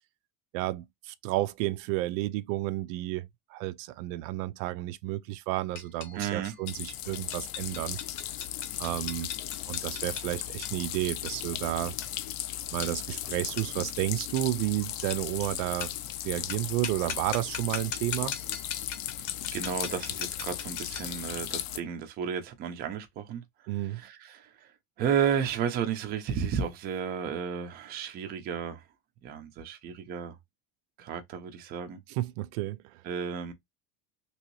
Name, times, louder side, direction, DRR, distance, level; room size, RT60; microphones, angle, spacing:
voice 1, 0.5-8.0 8.8-9.3 9.7-12.0 12.7-15.9 16.2-18.4 23.7-24.0 32.1-32.9, right 16 dB, 85° right, 0.5 m, -31 dB
sound 1, 5.8-21.2, left 8 dB, 75° left, 1.0 m, -41 dB
voice 2, 6.1-6.5 19.2-23.4 23.9-24.7 25.0-28.8 29.2-30.4 31.0-32.0 33.0-33.5, right 7 dB, 25° right, 0.5 m, -33 dB
sound 2, 6.7-21.8, left 12 dB, 60° left, 0.5 m, -37 dB
3.0 x 2.8 x 3.0 m
cardioid pair, 175°, 37 cm